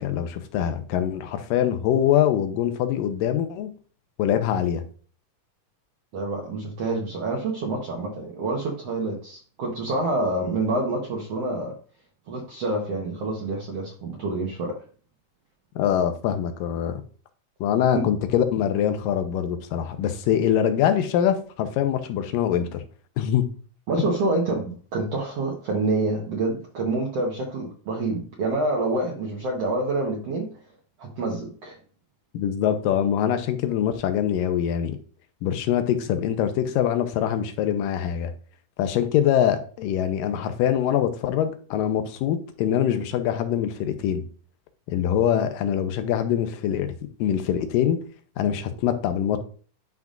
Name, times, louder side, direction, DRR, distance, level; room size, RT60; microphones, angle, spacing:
voice 1, 0.0-3.7 4.2-4.8 15.8-17.0 17.6-22.8 23.2-23.5 32.3-35.0 35.4-38.3 38.8-44.2 44.9-48.0 48.4-49.4, left 10 dB, 90° left, 9 dB, 2.4 m, -24 dB
voice 2, 6.1-11.7 12.3-14.7 17.9-18.1 23.9-30.5 31.0-31.8, right 2 dB, 60° right, -2 dB, 1.8 m, -27 dB
10.5 x 5.8 x 2.5 m, 0.42 s
omnidirectional pair, 3.9 m